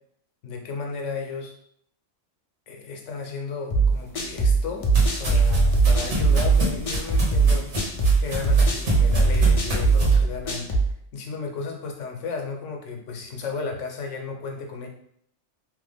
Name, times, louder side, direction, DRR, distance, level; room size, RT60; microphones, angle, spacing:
voice 1, 0.4-1.5 2.7-4.9 5.2-7.7 8.0-10.7 11.1-14.9, left 4 dB, 80° left, 2 dB, 1.0 m, -34 dB
sound 1, 3.7-10.9, right 4 dB, 45° left, 0.5 m, -20 dB
sound 2, 4.0-10.1, equal, 70° right, 1.3 m, -30 dB
3.2 x 2.0 x 3.4 m, 0.70 s
omnidirectional pair, 1.2 m